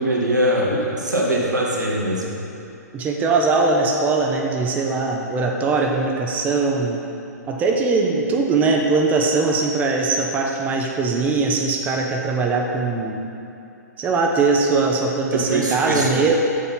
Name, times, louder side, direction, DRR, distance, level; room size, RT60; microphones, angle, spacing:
voice 1, 0.0-2.3 15.3-16.1, right 1 dB, 85° right, -4 dB, 1.5 m, -22 dB
voice 2, 2.9-7.0 7.5-13.2 14.0-16.3, right 3 dB, 15° right, 0 dB, 0.6 m, -21 dB
7.1 x 4.1 x 5.6 m, 2.8 s
figure-of-eight pair, 115°, 9 cm